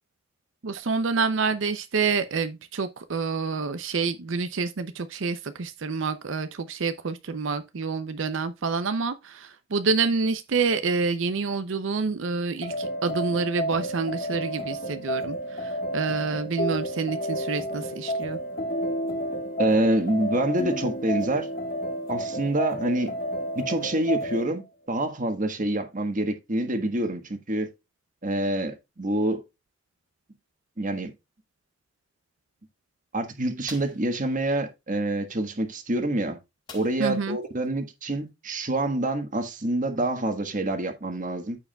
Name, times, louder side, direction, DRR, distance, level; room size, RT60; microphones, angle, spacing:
voice 1, 0.6-15.4 15.6-18.4 37.0-37.4, right 4 dB, 85° right, 0.6 m, -27 dB
sound 1, 12.6-24.5, equal, 50° left, 1.5 m, -31 dB
voice 2, 19.6-21.5 22.1-23.1 23.5-27.7 28.2-29.4 30.8-31.1 33.1-36.4 36.7-41.6, right 1 dB, 45° right, 1.4 m, -27 dB
sound 2, 33.7-34.1 36.7-37.2 37.6-37.7 38.1-38.3, left 4 dB, 25° left, 4.1 m, -46 dB
14.0 x 4.8 x 2.3 m
head